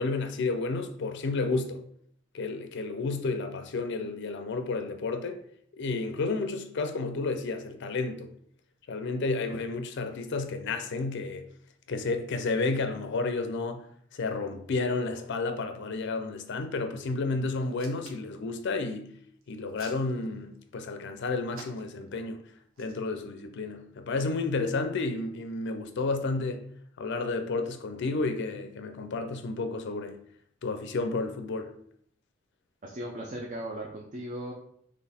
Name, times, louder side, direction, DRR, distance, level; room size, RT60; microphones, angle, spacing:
voice 1, 0.0-1.8 2.3-5.4 5.7-8.3 8.9-11.4 11.9-13.9 14.1-19.1 19.5-22.4 22.8-26.6 27.0-30.2 30.6-31.7, left 3 dB, 60° left, 0.5 m, -31 dB
Hands, 17.6-18.4 19.4-20.6 21.5-22.1 22.7-22.9, right 3 dB, 90° right, 0.9 m, -49 dB
voice 2, 32.8-34.5, right 1 dB, 40° right, 0.6 m, -37 dB
4.0 x 3.1 x 4.1 m
head